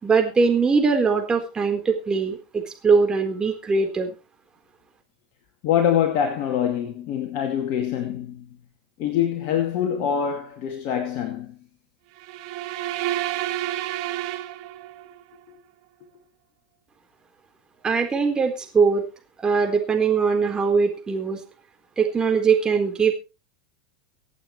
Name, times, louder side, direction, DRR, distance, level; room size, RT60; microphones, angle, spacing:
voice 1, 0.0-4.1 17.8-19.0 19.4-21.4 22.0-23.1, right 5 dB, 20° right, 4.1 m, -21 dB
voice 2, 5.6-8.6 9.0-11.6 15.5-15.6, left 9 dB, 50° left, 2.4 m, -24 dB
sound 1, 12.2-15.2, right 14 dB, 55° right, 1.7 m, -29 dB
25.0 x 8.6 x 3.2 m
hypercardioid pair, 90°, 4 cm